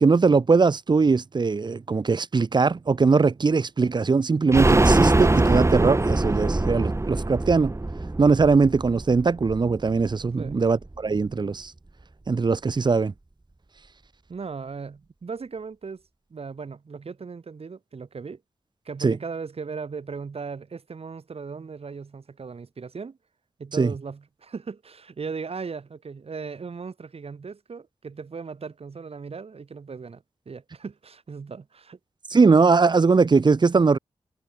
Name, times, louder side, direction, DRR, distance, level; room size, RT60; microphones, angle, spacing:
voice 1, 0.0-7.7 8.2-11.7 12.3-13.1 19.0-19.2 23.8-23.9 32.3-34.0, right 4 dB, 45° right, 0.9 m, -20 dB
sound 1, 4.5-10.1 10.5-10.6 10.9-11.0, right 2 dB, 25° right, 4.7 m, -22 dB
voice 2, 14.3-16.0 16.3-18.4 18.9-23.2 23.6-32.0, right 5 dB, 65° right, 7.4 m, -37 dB
wide cardioid pair, 85°, 11 cm